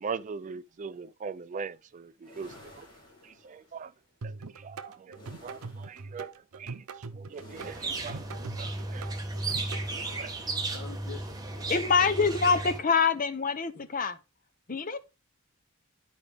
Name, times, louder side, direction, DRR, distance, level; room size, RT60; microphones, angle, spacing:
voice 1, 0.0-2.9 3.2-3.9 4.2-6.8 7.1-8.3 8.6-9.1 9.7-9.8 10.2-10.4, right 5 dB, 35° right, 0.3 m, -41 dB
sound 1, 2.2-3.8 5.1-6.1 7.3-8.4 9.8-10.7, left 1 dB, 20° left, 2.6 m, -53 dB
sound 2, 4.2-9.8, right 4 dB, 90° right, 0.7 m, -42 dB
sound 3, 7.6-12.8, right 2 dB, 20° right, 1.1 m, -34 dB
voice 2, 10.7-11.7 13.7-13.9, left 6 dB, 80° left, 2.2 m, -46 dB
voice 3, 11.7-14.1 14.7-15.0, left 5 dB, 40° left, 0.7 m, -25 dB
11.0 x 4.8 x 3.4 m
head